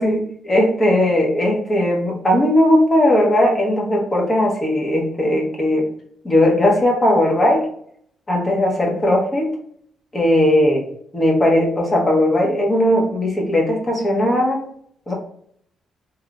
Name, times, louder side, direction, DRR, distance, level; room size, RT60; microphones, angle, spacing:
voice 1, 0.0-5.9 6.2-7.7 8.3-9.5 10.1-10.8 11.1-14.7 15.1-15.2, left 1 dB, 25° left, 0 dB, 1.0 m, -17 dB
3.2 x 3.0 x 2.4 m, 0.65 s
cardioid pair, 90°, 0 cm